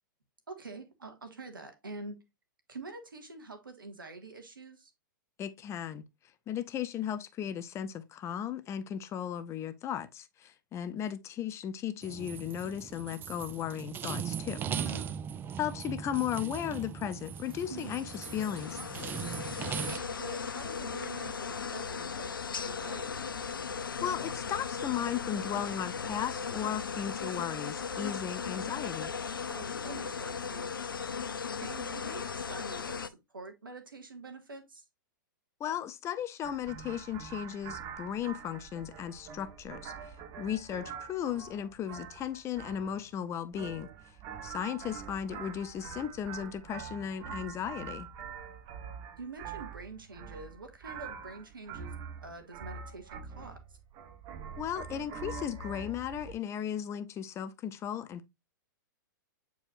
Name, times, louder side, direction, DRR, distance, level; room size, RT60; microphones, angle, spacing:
voice 1, 0.5-2.2 2.7-4.9 14.6-15.2 17.7-18.1 19.6-22.3 22.6-23.3 29.5-30.9 31.6-34.8 49.2-53.6, right 3 dB, 85° right, 1.9 m, -46 dB
voice 2, 5.4-6.1 6.5-14.6 15.6-18.8 24.0-29.1 35.6-43.9 44.4-48.1 54.6-58.3, left 9 dB, 25° left, 0.7 m, -36 dB
sound 1, 12.0-20.0, right 8 dB, 20° right, 0.4 m, -39 dB
sound 2, 17.3-33.1, left 6 dB, 85° left, 0.7 m, -37 dB
sound 3, 36.4-56.3, right 6 dB, 35° right, 1.3 m, -44 dB
8.6 x 4.7 x 2.5 m
hypercardioid pair, 110°, 11 cm